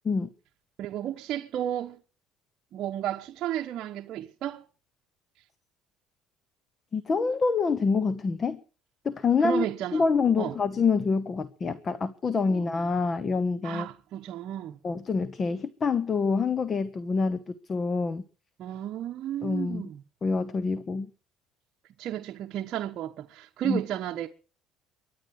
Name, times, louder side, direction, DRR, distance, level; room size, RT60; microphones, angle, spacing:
voice 1, 0.8-2.0 2.7-4.6 9.4-10.0 10.4-10.5 12.5-12.7 13.6-14.8 18.6-20.0 22.0-24.3, right 11 dB, 55° right, 1.1 m, -33 dB
voice 2, 6.9-8.6 9.0-9.7 9.9-13.9 14.8-18.2 19.4-19.9 20.2-21.1 23.6-23.8, left 4 dB, 30° left, 1.0 m, -26 dB
23.0 x 9.5 x 6.5 m
cardioid pair, 135°, 0 cm